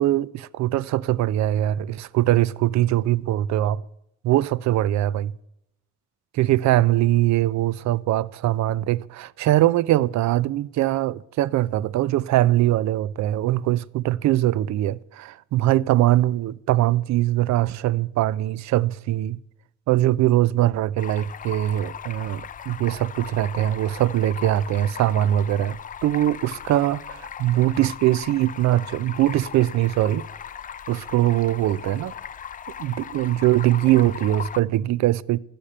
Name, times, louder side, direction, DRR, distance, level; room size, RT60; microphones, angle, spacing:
voice 1, 0.0-3.8 4.2-5.3 6.3-19.4 19.9-30.2 30.9-32.1 32.8-35.4, right 14 dB, 65° right, 0.4 m, -22 dB
Stream, 21.0-34.6, left 8 dB, 30° left, 0.3 m, -38 dB
11.5 x 5.1 x 8.5 m
cardioid pair, 90°, 30 cm